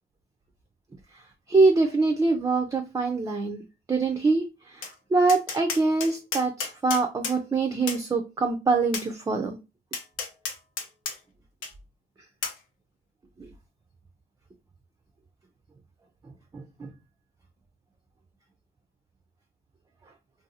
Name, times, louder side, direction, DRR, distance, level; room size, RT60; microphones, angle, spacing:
voice 1, 1.5-3.6 3.9-9.6 13.4-13.5 16.5-16.9, right 3 dB, 15° right, 5 dB, 0.4 m, -24 dB
Tap, 4.8-4.9 5.3-7.4 7.9-8.0 8.9-9.1 9.9-11.2 11.6-11.7 12.4-12.6, left 5 dB, 90° left, 0.7 m, -32 dB
2.5 x 2.3 x 2.7 m, 0.27 s
cardioid pair, 90°, 20 cm